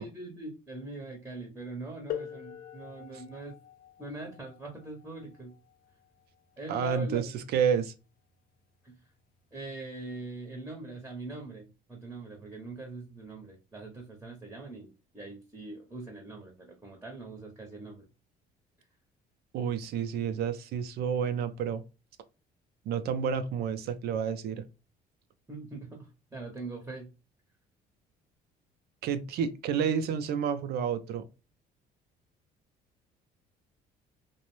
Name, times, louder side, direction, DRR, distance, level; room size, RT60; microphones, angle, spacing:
voice 1, 0.0-3.5 4.0-5.5 6.6-7.3 8.8-9.0 9.5-18.1 25.5-27.1, right 3 dB, 10° right, 0.7 m, -42 dB
sound 1, 2.1-7.5 8.6-8.7 9.5-9.7, left 10 dB, 60° left, 0.5 m, -44 dB
voice 2, 6.7-7.9 19.5-21.8 22.9-24.6 29.0-31.3, right 7 dB, 70° right, 0.4 m, -30 dB
2.5 x 2.0 x 2.9 m
cardioid pair, 110°, 17 cm